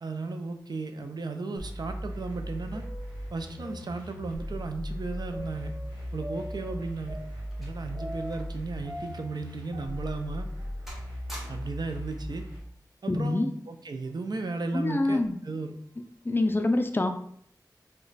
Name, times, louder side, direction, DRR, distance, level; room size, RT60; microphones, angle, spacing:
voice 1, 0.0-2.8 3.3-5.7 6.1-7.2 7.6-10.5 11.5-12.5 13.0-15.7, right 3 dB, 65° right, 7 dB, 0.4 m, -35 dB
sound 1, 1.6-12.6, equal, 85° right, 1.0 m, -38 dB
sound 2, 2.4-4.6 5.3-8.6 8.8-11.2 11.5-11.6 12.3-12.4 13.2-13.4 14.0-14.1 15.0-15.3, equal, 40° right, 1.3 m, -45 dB
sound 3, 7.2-8.7 9.0-9.1 9.8-9.9 10.3-10.6 10.9-11.9 12.9-13.2, equal, 5° right, 1.1 m, -48 dB
voice 2, 13.1-13.5 14.7-15.4 16.2-17.1, left 2 dB, 30° left, 7 dB, 0.4 m, -25 dB
3.0 x 2.2 x 3.9 m, 0.67 s
wide cardioid pair, 50°, 8 cm